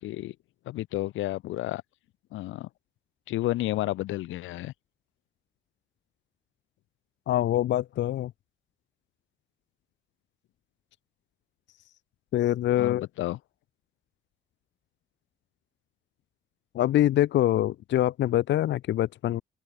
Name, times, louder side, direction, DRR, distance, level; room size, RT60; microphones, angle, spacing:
voice 1, 0.0-0.3 0.7-1.8 2.3-2.7 3.3-4.7 12.8-13.4, left 16 dB, 85° left, 1.0 m, -31 dB
voice 2, 7.3-8.3 12.3-13.1 16.7-19.4, left 13 dB, 65° left, 0.6 m, -24 dB
open air
cardioid pair, 90°, 20 cm